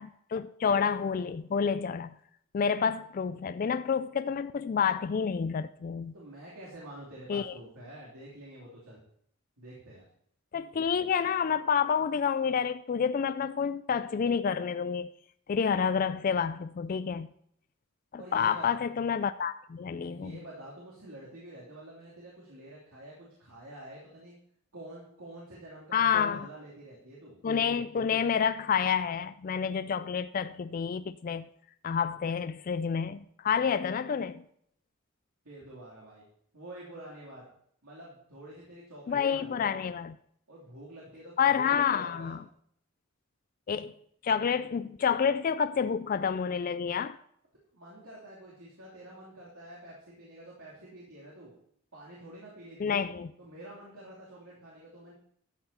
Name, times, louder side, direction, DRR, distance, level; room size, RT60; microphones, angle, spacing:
voice 1, 0.0-2.1 2.5-6.1 7.3-7.5 10.5-15.1 15.5-17.3 18.1-20.3 25.9-26.5 27.4-31.5 31.8-34.4 39.1-40.2 41.4-42.4 43.7-43.9 44.2-47.2 52.8-53.3, left 7 dB, 40° left, 0.3 m, -29 dB
voice 2, 6.1-9.0 9.6-10.0 18.2-18.8 20.0-24.3 24.7-27.4 35.4-36.2 36.5-37.4 37.8-39.8 40.5-42.4 47.7-51.5 51.9-53.0 53.4-55.1, right 1 dB, 85° right, 2.8 m, -48 dB
12.5 x 8.0 x 4.2 m
head